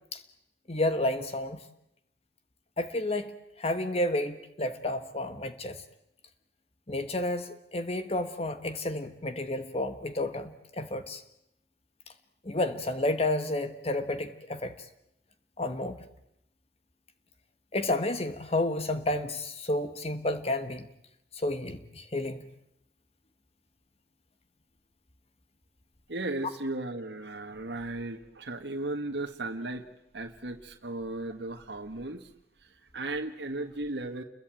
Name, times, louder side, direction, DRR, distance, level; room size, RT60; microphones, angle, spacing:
voice 1, 0.7-1.6 2.8-3.3 3.6-5.8 6.9-11.2 12.4-14.7 15.6-16.0 17.7-20.8 21.3-22.4, left 1 dB, 35° left, 9 dB, 1.4 m, -31 dB
voice 2, 26.1-29.8 30.1-32.3 32.6-34.2, right 2 dB, 80° right, 3 dB, 1.6 m, -36 dB
29.5 x 22.5 x 9.0 m, 0.82 s
head